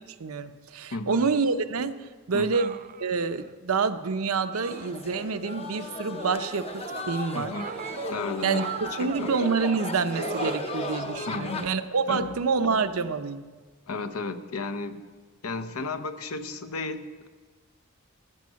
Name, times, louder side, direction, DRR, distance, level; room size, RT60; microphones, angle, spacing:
voice 1, 0.2-2.0 2.3-2.7 3.0-7.5 8.4-13.4, right 4 dB, 80° right, 10 dB, 0.7 m, -27 dB
voice 2, 0.9-1.4 2.3-2.6 7.3-7.7 8.1-9.3 11.3-11.7 12.1-12.3 13.9-15.0 15.4-17.3, left 3 dB, 80° left, 10 dB, 0.8 m, -34 dB
sound 1, 1.1-1.5 2.5-3.4 4.5-5.4 6.2-7.1 7.5-9.3 10.1-11.6 12.7-12.9, right 7 dB, 40° right, 0.3 m, -39 dB
sound 2, 4.6-11.7, left 3 dB, 30° left, 0.7 m, -36 dB
14.0 x 9.3 x 6.3 m, 1.4 s
head